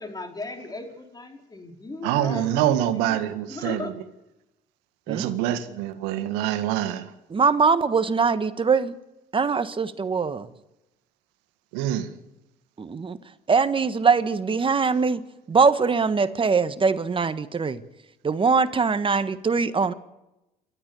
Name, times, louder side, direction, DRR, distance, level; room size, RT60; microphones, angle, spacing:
voice 1, 0.0-3.2 3.5-4.0, left 3 dB, 20° left, 4 dB, 4.5 m, -37 dB
voice 2, 2.0-3.9 5.1-7.1 11.7-12.1, right 12 dB, 90° right, 9 dB, 1.9 m, -25 dB
voice 3, 7.3-9.0 9.3-10.5 12.8-13.2 13.5-15.2 15.5-17.8 18.2-19.9, right 5 dB, 30° right, 12 dB, 1.4 m, -22 dB
29.0 x 13.0 x 7.0 m, 0.94 s
supercardioid pair, 80°, 17 cm